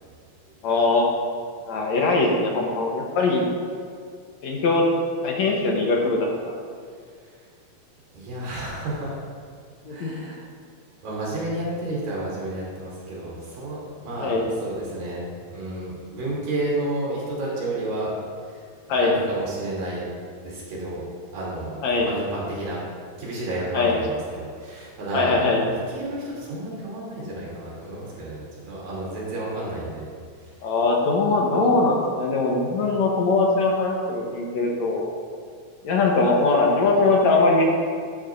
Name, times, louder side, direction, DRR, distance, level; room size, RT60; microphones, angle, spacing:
voice 1, 0.6-1.1 1.6-3.5 4.4-4.9 5.2-6.5 9.9-10.1 14.2-14.5 18.9-19.2 21.8-22.1 23.7-24.0 25.1-25.6 30.6-35.1 35.8-37.6, left 3 dB, 65° left, 0 dB, 2.0 m, -21 dB
voice 2, 8.1-9.2 9.9-10.4 11.0-18.1 18.4-18.7 19.0-20.1 20.4-21.1 21.3-22.8 23.2-30.1 30.4-30.6, right 1 dB, 85° right, -6 dB, 4.7 m, -31 dB
13.5 x 9.3 x 2.6 m, 2.1 s
omnidirectional pair, 3.9 m